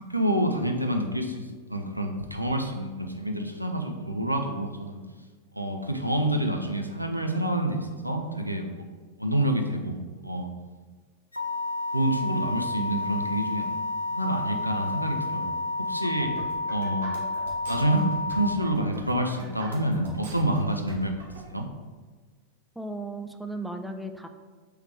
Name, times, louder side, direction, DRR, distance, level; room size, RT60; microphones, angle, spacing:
voice 1, 0.1-5.0 5.5-8.8 9.2-10.0 10.2-10.5 11.9-13.7 14.1-15.5 15.9-16.3 16.7-17.1 17.7-21.2 21.5-21.7, right 1 dB, 90° right, 4 dB, 0.4 m, -28 dB
sound 1, 11.3-18.6, left 2 dB, 85° left, 0.3 m, -30 dB
sound 2, 15.8-21.4, right 3 dB, 70° right, 0.9 m, -42 dB
voice 2, 22.8-24.3, right 2 dB, ahead, 6 dB, 0.3 m, -35 dB
3.2 x 3.1 x 4.7 m, 1.4 s
figure-of-eight pair, 90°, 0 cm